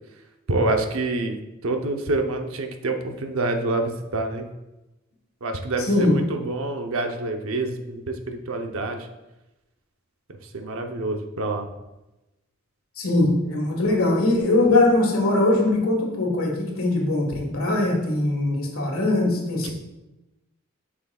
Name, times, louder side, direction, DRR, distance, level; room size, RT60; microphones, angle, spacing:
voice 1, 0.5-1.4 1.6-4.5 5.4-9.1 10.5-11.7 19.6-19.7, right 2 dB, 70° right, 5 dB, 0.7 m, -27 dB
voice 2, 5.8-6.2 13.0-19.7, left 2 dB, 80° left, 1 dB, 1.6 m, -21 dB
7.7 x 6.0 x 2.3 m, 0.99 s
head